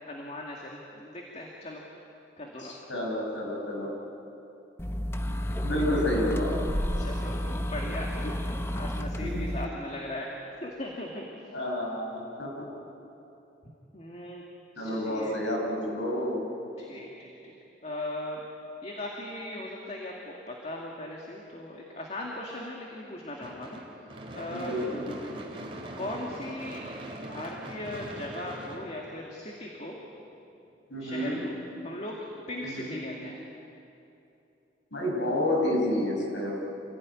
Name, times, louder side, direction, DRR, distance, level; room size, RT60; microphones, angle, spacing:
voice 1, 0.1-1.8 2.4-2.9 6.9-10.3 10.6-11.2 13.9-14.4 14.7-15.4 16.8-17.5 17.8-18.5 18.8-23.8 24.3-24.7 26.0-26.8 27.1-30.0 31.0-31.5 31.8-33.4, left 1 dB, 35° left, -1 dB, 2.3 m, -38 dB
voice 2, 2.6-3.9 5.6-6.6 9.2-9.4 11.5-12.5 14.8-16.4 24.5-25.3 30.9-31.4 32.6-33.0 34.9-36.5, left 1 dB, 80° left, -1 dB, 6.2 m, -30 dB
sound 1, 4.8-9.6, equal, 15° left, 0.8 m, -31 dB
Gunshot gunfire / Fireworks, 23.4-29.7, right 1 dB, 30° right, 2.9 m, -42 dB
27.0 x 17.0 x 9.7 m, 2.9 s
head